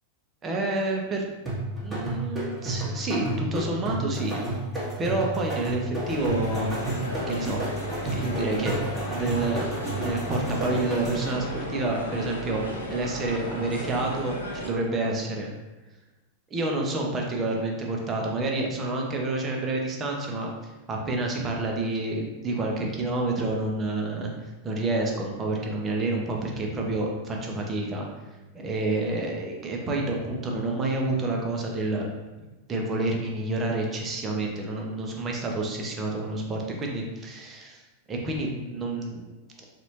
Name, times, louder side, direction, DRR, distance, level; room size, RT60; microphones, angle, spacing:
voice 1, 0.4-1.2 1.8-4.4 5.0-6.9 7.3-7.6 8.1-8.8 9.1-12.6 12.9-15.5 16.5-20.5 20.9-24.3 24.6-28.0 28.5-32.1 32.7-37.8 38.1-39.3, right 2 dB, 25° right, 0 dB, 0.7 m, -29 dB
sound 1, 1.5-11.4, right 2 dB, ahead, 1.1 m, -31 dB
sound 2, 6.0-14.7, equal, 75° left, 0.6 m, -35 dB
4.0 x 2.5 x 3.0 m, 1.1 s
figure-of-eight pair, 90°, 0 cm